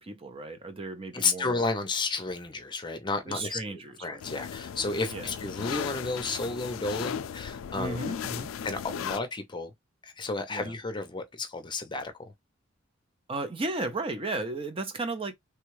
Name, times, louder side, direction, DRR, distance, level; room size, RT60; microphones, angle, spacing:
voice 1, 0.0-1.6 3.3-4.2 5.1-5.3 7.7-8.5 10.5-10.7 13.3-15.3, right 2 dB, 30° right, 0.5 m, -34 dB
voice 2, 1.1-8.0 8.6-9.7 10.0-12.3, left 3 dB, 25° left, 0.6 m, -32 dB
sound 1, 4.2-9.2, left 7 dB, 80° left, 0.3 m, -36 dB
3.4 x 2.3 x 3.1 m
head